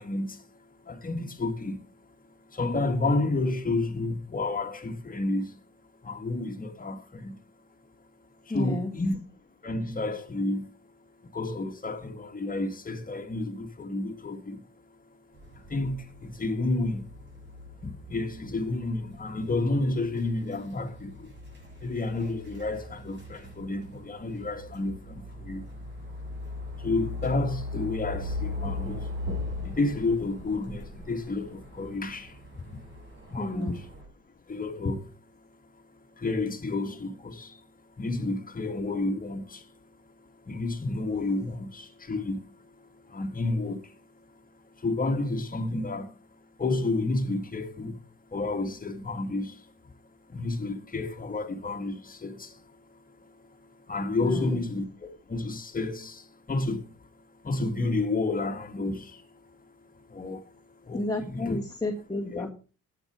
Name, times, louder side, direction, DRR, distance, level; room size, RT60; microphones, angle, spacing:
voice 1, 0.0-1.9 2.5-5.6 6.0-7.4 8.4-9.2 9.6-10.7 11.2-14.7 15.5-17.1 17.8-21.3 21.8-25.7 26.8-29.2 29.6-33.9 34.5-35.5 35.7-44.0 44.7-49.9 50.3-57.1 57.4-59.5 59.8-61.6 62.3-62.5, left 2 dB, 30° left, 1.9 m, -31 dB
voice 2, 8.5-8.9 33.4-33.8 54.2-54.6 60.9-62.5, left 2 dB, 10° left, 2.0 m, -31 dB
sound 1, 15.3-34.1, left 2 dB, 35° right, 7.4 m, -40 dB
11.5 x 8.3 x 5.0 m
cardioid pair, 90°, 30 cm